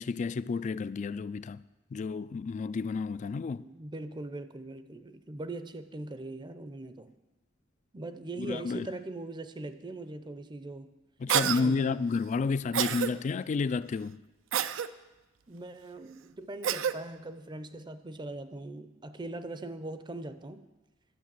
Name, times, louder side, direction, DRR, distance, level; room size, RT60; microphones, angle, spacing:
voice 1, 0.0-1.6 1.9-3.6 8.5-8.9 11.2-14.2, left 4 dB, 40° left, 0.3 m, -31 dB
voice 2, 3.6-7.1 7.9-10.9 11.4-12.0 15.5-20.6, right 2 dB, 25° right, 0.6 m, -41 dB
Cough, 11.3-11.6 12.7-13.1 14.5-14.9 16.6-17.0, right 9 dB, 80° right, 0.4 m, -28 dB
12.0 x 6.4 x 7.5 m
head